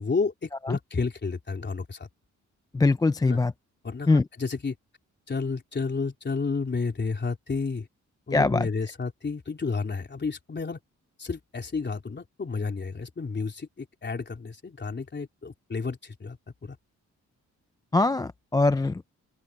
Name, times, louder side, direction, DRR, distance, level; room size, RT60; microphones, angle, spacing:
voice 1, 0.0-2.1 3.2-3.4 3.8-4.8 5.3-7.9 8.3-10.8 11.2-16.8, left 4 dB, 35° left, 3.7 m, -31 dB
voice 2, 2.7-3.5 4.1-4.2 8.3-8.7 17.9-19.0, left 3 dB, 15° left, 0.3 m, -22 dB
open air
wide cardioid pair, 115°, 31 cm